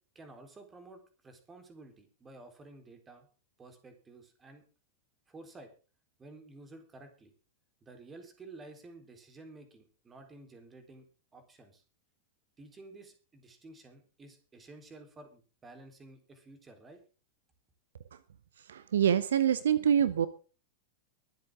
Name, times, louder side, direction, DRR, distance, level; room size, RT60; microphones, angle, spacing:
voice 1, 0.2-3.3 3.6-4.6 5.3-5.7 6.2-7.3 7.8-11.1 11.3-11.8 12.6-17.0, right 2 dB, 20° right, 7 dB, 3.8 m, -52 dB
voice 2, 18.7-20.3, right 9 dB, 65° right, 17 dB, 0.7 m, -25 dB
23.0 x 8.1 x 3.7 m, 0.35 s
figure-of-eight pair, 90°, 0 cm